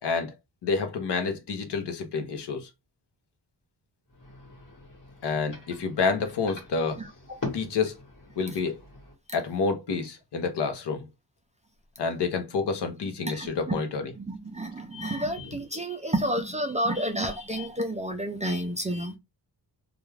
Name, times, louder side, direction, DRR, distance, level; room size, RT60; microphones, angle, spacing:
voice 1, 0.0-0.3 0.6-2.7 5.2-7.0 7.5-8.0 8.4-8.8 9.3-11.1 12.0-14.1, left 5 dB, 70° left, 0.8 m, -28 dB
sound 1, 4.1-9.1, left 3 dB, 45° left, 1.3 m, -42 dB
voice 2, 13.3-13.8 14.2-19.1, right 1 dB, 20° right, 0.4 m, -30 dB
2.4 x 2.3 x 3.1 m
wide cardioid pair, 130°, 43 cm